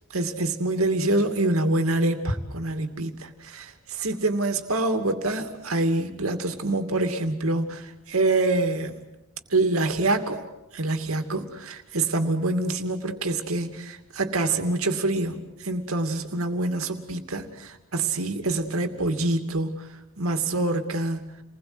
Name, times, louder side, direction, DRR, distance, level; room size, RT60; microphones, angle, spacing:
voice 1, 0.1-9.1 9.5-10.4 10.7-15.4 15.6-19.7 20.2-21.3, right 2 dB, 85° right, 6 dB, 2.6 m, -26 dB
29.5 x 21.0 x 8.0 m, 0.94 s
head